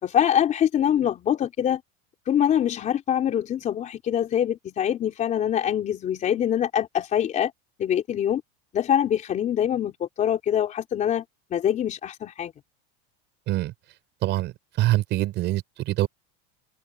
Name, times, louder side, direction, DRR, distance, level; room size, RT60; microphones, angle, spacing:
voice 1, 0.0-1.8 2.3-7.5 7.8-8.4 8.7-11.2 11.5-12.5, left 10 dB, 25° left, 3.7 m, -24 dB
voice 2, 14.2-14.5 14.8-16.1, right 16 dB, 35° right, 7.0 m, -24 dB
supercardioid pair, 175°, 31 cm